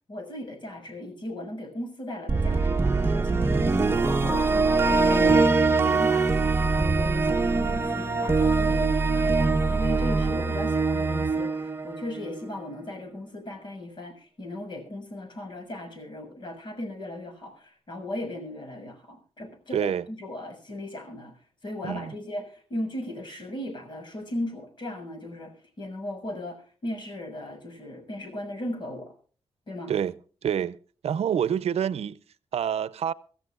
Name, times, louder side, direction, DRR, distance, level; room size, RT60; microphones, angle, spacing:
voice 1, 0.1-3.7 4.0-19.9 20.2-21.3 21.6-29.1 29.7-29.9, left 1 dB, 50° left, 6.9 m, -37 dB
sound 1, 2.3-12.5, right 3 dB, 25° right, 1.2 m, -23 dB
voice 2, 19.7-20.1 21.8-22.1 29.9-30.1 30.4-30.8 31.0-32.2 32.5-33.1, right 9 dB, 85° right, 0.6 m, -27 dB
25.0 x 14.5 x 2.5 m
wide cardioid pair, 130°, 10 cm